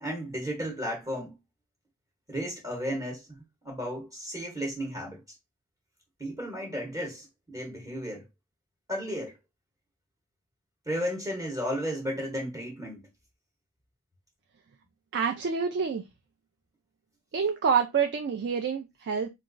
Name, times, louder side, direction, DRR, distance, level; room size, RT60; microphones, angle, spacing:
voice 1, 0.0-1.4 2.3-5.2 6.2-8.2 8.9-9.4 10.9-13.0, equal, 15° right, 0.8 m, -34 dB
voice 2, 15.1-16.0 17.3-19.3, right 6 dB, 50° right, 0.4 m, -27 dB
3.9 x 2.3 x 2.5 m
head